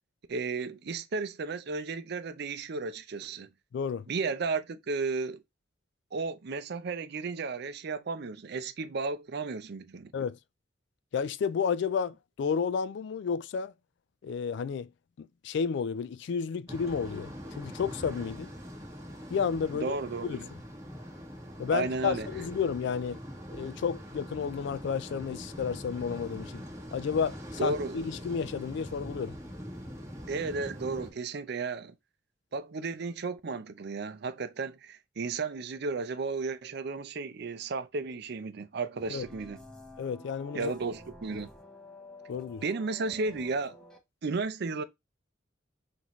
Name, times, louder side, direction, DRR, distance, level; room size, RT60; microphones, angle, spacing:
voice 1, 0.3-3.5 4.1-5.4 6.1-10.1 19.7-20.5 21.7-22.3 27.6-28.0 30.3-31.9 32.5-39.6 40.5-41.5 42.6-43.8 44.2-44.8, right 4 dB, 60° right, 0.5 m, -34 dB
voice 2, 3.7-4.1 10.1-10.4 11.1-13.7 14.2-14.9 15.2-17.3 17.6-18.5 19.3-20.0 20.2-20.4 21.6-23.2 23.5-26.6 26.9-29.3 39.1-39.2 40.0-40.7 42.3-42.6, left 6 dB, 60° left, 0.3 m, -31 dB
sound 1, 16.7-31.1, equal, 15° right, 1.4 m, -43 dB
sound 2, 39.0-44.0, left 1 dB, 5° left, 0.7 m, -50 dB
5.9 x 2.6 x 3.0 m
head